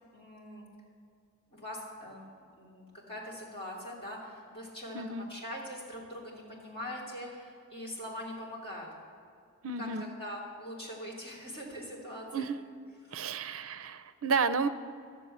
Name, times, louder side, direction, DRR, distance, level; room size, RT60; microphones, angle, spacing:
voice 1, 0.1-0.6 1.5-2.3 2.6-8.9 9.8-12.5 13.0-13.3, equal, 25° left, -5 dB, 3.2 m, -42 dB
voice 2, 4.9-5.3 9.6-10.1 12.3-12.6 13.1-14.7, right 5 dB, 65° right, 11 dB, 0.6 m, -31 dB
12.5 x 7.7 x 8.0 m, 2.3 s
head